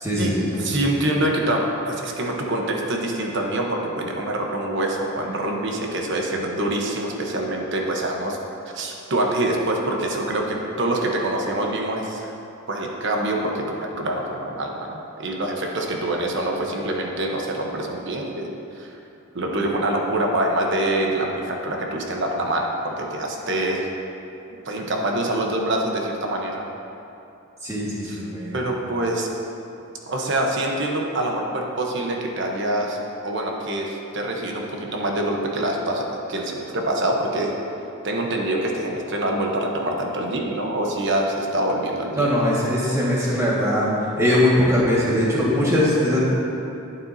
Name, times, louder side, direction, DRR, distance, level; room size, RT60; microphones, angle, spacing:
voice 1, 0.0-0.6 27.6-28.6 42.1-43.9 44.2-46.2, left 1 dB, 15° right, -7 dB, 1.8 m, -21 dB
voice 2, 0.6-8.4 8.7-12.3 12.7-18.5 18.8-18.9 19.3-23.9 24.6-26.6 28.0-28.2 28.5-29.3 30.1-33.0 33.2-37.5 38.0-42.3, right 1 dB, 55° right, 0 dB, 1.0 m, -25 dB
11.5 x 8.7 x 2.8 m, 2.8 s
head